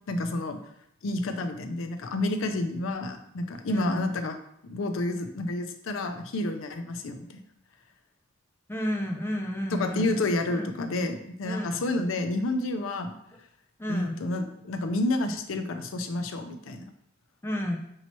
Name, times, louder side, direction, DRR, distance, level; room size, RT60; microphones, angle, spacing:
voice 1, 0.1-0.6 1.0-4.3 4.6-7.4 9.7-13.2 13.9-16.8, left 2 dB, 70° left, 7 dB, 0.5 m, -30 dB
voice 2, 3.7-4.1 8.7-10.2 10.5-10.7 11.5-11.8 13.8-14.2 17.4-17.8, equal, 10° left, 2 dB, 0.4 m, -31 dB
5.4 x 2.8 x 3.0 m, 0.74 s
head